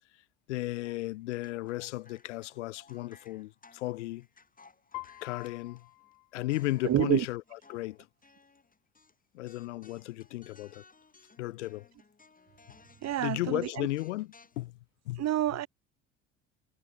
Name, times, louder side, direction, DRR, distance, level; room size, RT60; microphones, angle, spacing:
voice 1, 0.5-4.3 5.2-5.9 6.3-8.1 9.3-10.8 11.4-11.9 13.2-14.8 15.1-15.2, left 18 dB, 85° left, 0.5 m, -35 dB
sound 1, 0.8-6.2 6.5-9.1 9.5-14.7, left 4 dB, 25° left, 4.6 m, -60 dB
Piano, 4.9-7.0, left 23 dB, 70° left, 4.0 m, -47 dB
voice 2, 6.8-7.2 13.0-13.6 15.2-15.7, right 13 dB, 50° right, 1.0 m, -27 dB
hypercardioid pair, 60°, 34 cm